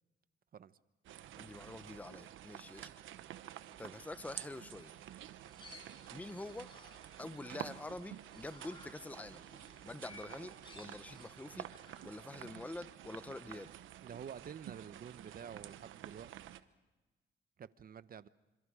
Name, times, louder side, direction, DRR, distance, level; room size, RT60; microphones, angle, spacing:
sound 1, 1.0-16.6, right 12 dB, 80° right, 1.0 m, -50 dB
voice 1, 1.4-2.9 3.8-4.9 6.1-6.7 7.2-9.5 9.8-11.7 12.0-13.7, left 2 dB, 5° left, 14 dB, 0.8 m, -46 dB
sound 2, 4.8-12.0, left 3 dB, 25° left, 5.3 m, -59 dB
voice 2, 14.0-16.3 17.6-18.3, right 8 dB, 45° right, 15 dB, 0.9 m, -49 dB
27.5 x 26.5 x 4.9 m, 1.1 s
cardioid pair, 90°, 20 cm